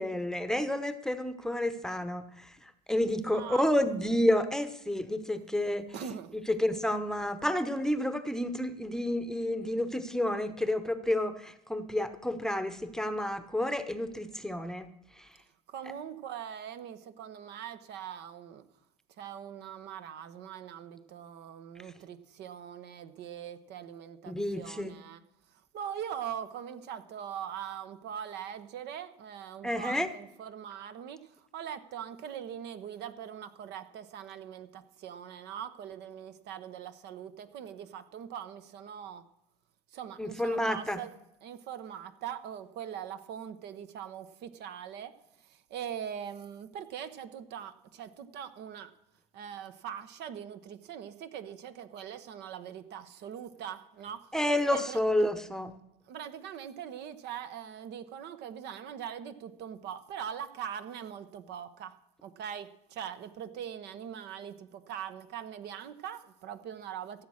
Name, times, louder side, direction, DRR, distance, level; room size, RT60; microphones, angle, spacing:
voice 1, 0.0-2.5 2.9-5.9 6.5-14.9 15.2-15.3 24.3-24.9 29.6-30.1 40.2-41.0 54.3-55.7, left 1 dB, 5° left, 10 dB, 0.9 m, -30 dB
voice 2, 3.2-3.6 5.9-6.3 15.7-18.6 19.2-25.2 25.7-39.3 39.9-41.1 41.4-48.9 49.3-54.3 54.7-55.0 56.1-61.9 62.2-67.2, right 9 dB, 55° right, 11 dB, 1.0 m, -42 dB
15.0 x 7.4 x 6.4 m, 0.80 s
supercardioid pair, 90°, 20 cm